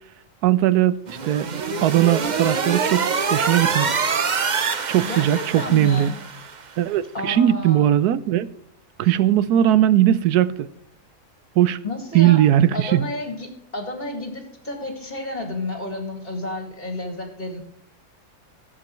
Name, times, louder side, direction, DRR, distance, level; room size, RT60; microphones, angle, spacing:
voice 1, 0.4-4.0 4.9-6.1 6.8-8.5 9.0-10.7 11.6-11.8 12.1-13.1, right 12 dB, 85° right, 1.2 m, -19 dB
sound 1, 1.1-6.6, right 5 dB, 40° right, 0.7 m, -25 dB
voice 2, 5.1-6.1 7.1-7.9 9.0-9.1 11.8-12.4 12.7-17.6, left 2 dB, 30° left, 2.0 m, -31 dB
16.0 x 7.6 x 3.1 m
omnidirectional pair, 1.6 m